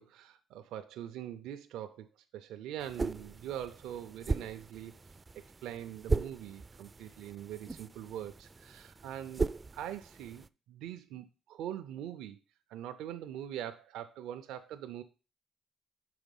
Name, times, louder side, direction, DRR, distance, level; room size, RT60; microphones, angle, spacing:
voice 1, 0.0-2.1 2.3-4.9 5.6-12.4 12.7-15.0, right 11 dB, 90° right, 8 dB, 0.5 m, -43 dB
sound 1, 2.8-10.5, right 3 dB, 25° right, 0.3 m, -38 dB
6.1 x 5.0 x 5.3 m, 0.32 s
cardioid pair, 90°, 0 cm